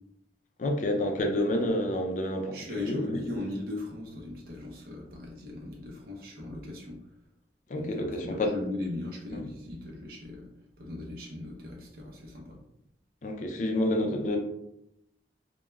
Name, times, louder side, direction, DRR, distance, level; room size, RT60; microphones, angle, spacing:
voice 1, 0.6-3.2 7.7-8.5 9.3-9.5 13.2-14.4, left 1 dB, 45° left, 3 dB, 0.4 m, -29 dB
voice 2, 2.5-7.0 7.7-10.5 10.8-12.6, left 2 dB, 55° right, -2 dB, 0.6 m, -38 dB
2.2 x 2.1 x 3.0 m, 0.80 s
head